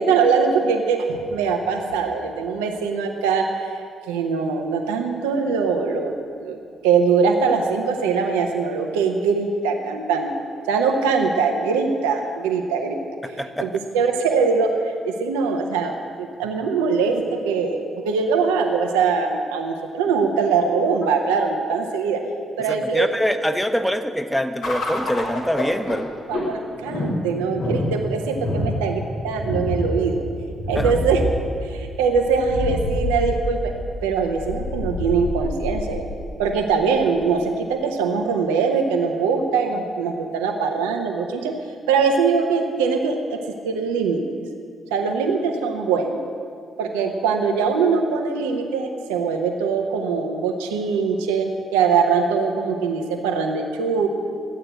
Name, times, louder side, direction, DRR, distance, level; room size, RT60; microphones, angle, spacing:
voice 1, 0.0-3.7 4.1-6.1 6.4-6.6 6.8-10.3 10.7-13.0 13.6-22.2 22.6-23.1 25.9-26.0 26.3-30.2 30.7-31.2 31.6-33.7 34.0-36.0 36.4-41.5 41.9-43.4 43.6-44.2 44.9-46.2 46.8-54.1, right 5 dB, 85° right, 3 dB, 1.0 m, -22 dB
voice 2, 13.4-13.7 22.7-26.1 30.8-30.9, equal, 5° left, 7 dB, 1.1 m, -24 dB
sound 1, 24.6-37.2, left 1 dB, 70° left, 2.7 m, -28 dB
13.0 x 8.8 x 8.1 m, 2.3 s
hypercardioid pair, 45°, 0 cm